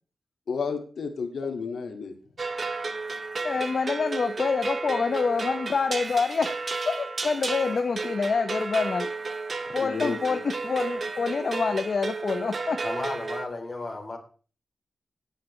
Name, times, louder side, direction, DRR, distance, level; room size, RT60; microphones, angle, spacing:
voice 1, 0.5-2.1 9.8-10.2, left 5 dB, 85° left, 4 dB, 2.0 m, -31 dB
sound 1, 2.4-13.5, right 3 dB, 45° right, 1.0 m, -33 dB
voice 2, 3.4-6.5 6.9-9.1 9.7-12.8, left 4 dB, 50° left, 8 dB, 0.8 m, -26 dB
voice 3, 12.8-14.2, left 2 dB, 25° left, 1 dB, 3.3 m, -33 dB
18.0 x 9.2 x 3.2 m, 0.39 s
wide cardioid pair, 140°, 0 cm